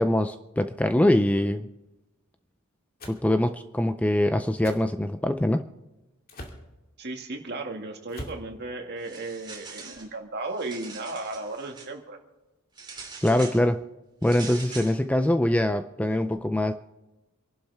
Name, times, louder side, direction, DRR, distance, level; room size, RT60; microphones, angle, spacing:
voice 1, 0.0-1.7 3.1-5.7 13.2-13.8 14.2-16.7, left 1 dB, 5° left, 9 dB, 0.4 m, -23 dB
sound 1, 3.0-3.2 4.6-4.8 6.3-6.6 8.1-8.5, left 1 dB, 40° left, 2.3 m, -40 dB
voice 2, 7.0-12.2, right 2 dB, 50° right, 2 dB, 2.1 m, -35 dB
sound 2, 9.0-10.1 10.5-11.9 12.8-13.6 14.2-15.0, right 4 dB, 20° right, 2.9 m, -42 dB
27.0 x 11.5 x 3.5 m, 1.0 s
head